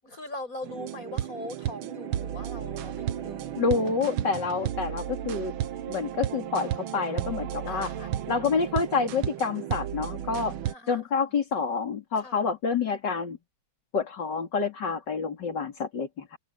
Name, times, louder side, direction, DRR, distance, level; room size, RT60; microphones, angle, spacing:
voice 1, 0.0-3.6 7.7-8.2 10.6-11.0 11.3-11.4 12.2-12.4, left 2 dB, 40° left, 8.6 m, -41 dB
sound 1, 0.6-10.7, right 11 dB, 80° right, 1.8 m, -33 dB
voice 2, 3.6-5.5 5.9-7.9 8.3-10.5 10.9-13.4 13.9-16.4, left 5 dB, 60° left, 3.6 m, -28 dB
omnidirectional pair, 2.2 m